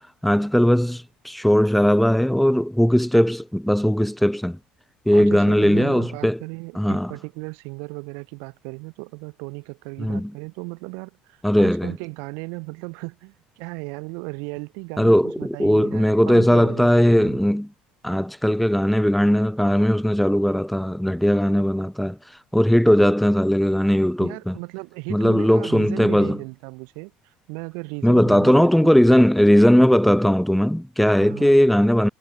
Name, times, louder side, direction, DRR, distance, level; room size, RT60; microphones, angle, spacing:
voice 1, 0.2-4.6 5.1-6.4 6.7-7.1 10.0-10.3 11.4-11.9 15.0-17.7 18.0-22.2 22.5-24.6 25.1-26.4 28.0-32.1, equal, ahead, 4.4 m, -18 dB
voice 2, 5.1-17.4 24.2-29.2 31.2-31.6, right 35 dB, 80° right, 3.7 m, -36 dB
supercardioid pair, 85°, 3 cm